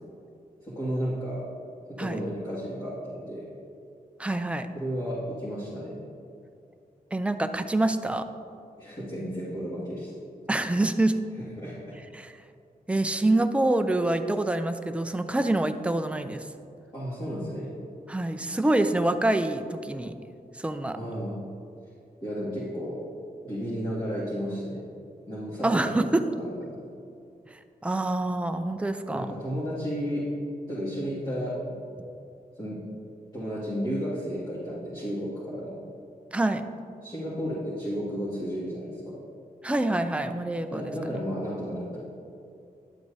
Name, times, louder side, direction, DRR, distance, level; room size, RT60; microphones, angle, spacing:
voice 1, 0.6-1.4 2.0-3.5 4.7-6.0 8.8-10.1 11.6-12.0 16.9-17.7 20.9-21.4 22.2-23.0 23.4-24.8 25.3-26.0 26.4-26.8 29.1-30.3 30.7-31.5 32.6-32.8 33.3-35.8 37.0-39.0 40.7-42.0, equal, 25° left, -10 dB, 2.1 m, -33 dB
voice 2, 4.2-4.7 7.1-8.2 10.5-11.1 12.1-12.3 12.9-16.5 18.1-20.1 20.6-21.0 25.6-26.2 27.8-29.3 36.3-36.6 39.6-40.9, right 2 dB, 10° right, 8 dB, 0.4 m, -26 dB
10.5 x 7.8 x 2.7 m, 2.5 s
wide cardioid pair, 110°, 16 cm